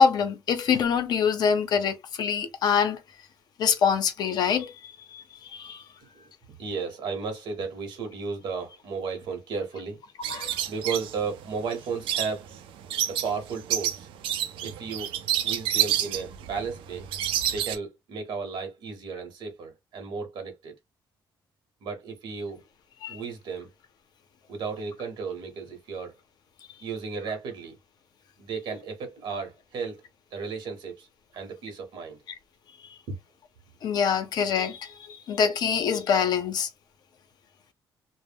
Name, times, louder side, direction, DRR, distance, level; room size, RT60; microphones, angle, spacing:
voice 1, 0.0-3.0 3.6-5.8 10.3-10.6 23.0-23.2 33.8-36.7, left 6 dB, 50° left, 0.5 m, -25 dB
voice 2, 6.6-10.0 10.7-12.5 13.1-14.1 14.6-15.1 15.4-17.1 17.4-20.7 21.8-22.6 23.1-23.7 24.5-26.2 26.8-27.7 28.4-30.0 30.3-31.1 31.3-32.2, right 5 dB, 60° right, 0.8 m, -34 dB
sound 1, 10.2-17.8, right 11 dB, 75° right, 0.4 m, -29 dB
2.2 x 2.0 x 3.3 m
cardioid pair, 160°, 9 cm